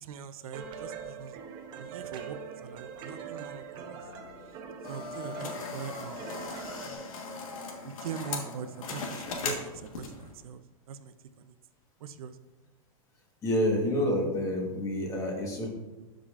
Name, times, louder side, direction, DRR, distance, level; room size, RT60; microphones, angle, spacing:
voice 1, 0.0-1.4 1.7-2.4 2.6-4.0 4.9-6.3 7.8-10.6 10.9-11.6 12.0-12.4, right 7 dB, 85° right, 11 dB, 0.6 m, -42 dB
sound 1, 0.5-7.0, right 5 dB, 25° right, 0.7 m, -43 dB
sound 2, 4.8-10.3, left 3 dB, 70° left, 1.4 m, -38 dB
voice 2, 13.4-15.7, left 1 dB, 20° left, 0 dB, 1.3 m, -28 dB
12.5 x 5.0 x 2.5 m, 1.2 s
supercardioid pair, 165°, 18 cm